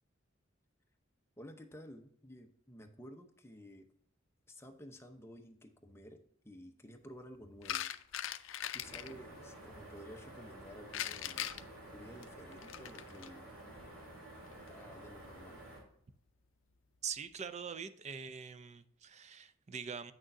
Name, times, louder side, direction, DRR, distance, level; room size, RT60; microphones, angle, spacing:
voice 1, 1.4-3.9 4.5-6.2 6.4-7.9 8.7-11.5 11.9-13.4 14.7-15.6, equal, 15° left, 0.8 m, -53 dB
sound 1, 7.6-9.1 10.9-13.3 14.5-14.7, left 11 dB, 70° left, 0.5 m, -40 dB
sound 2, 8.8-15.8, right 1 dB, 70° right, 3.3 m, -52 dB
voice 2, 17.0-20.1, right 6 dB, 35° right, 0.5 m, -43 dB
8.9 x 6.3 x 2.7 m
head